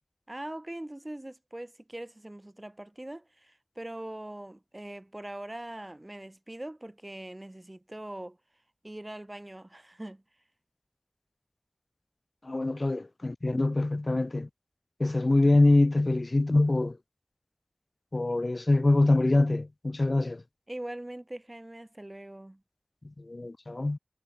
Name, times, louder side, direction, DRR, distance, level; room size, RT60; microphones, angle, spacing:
voice 1, 0.3-8.4 8.8-10.2 20.7-22.6, right 1 dB, 35° right, 4.8 m, -42 dB
voice 2, 12.4-14.5 15.0-17.0 18.1-20.4 23.2-24.0, left 2 dB, 70° left, 0.3 m, -24 dB
wide cardioid pair, 40°, 0 cm